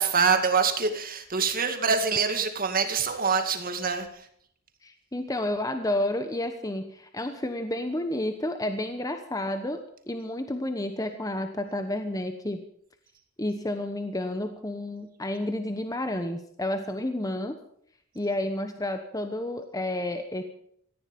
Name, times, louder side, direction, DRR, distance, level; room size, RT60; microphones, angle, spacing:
voice 1, 0.0-4.3, right 5 dB, 40° right, 7 dB, 2.3 m, -25 dB
voice 2, 4.8-9.8 10.1-12.6 13.4-17.5 18.1-20.4, left 1 dB, 15° left, 7 dB, 1.1 m, -30 dB
18.0 x 14.5 x 5.4 m, 0.66 s
head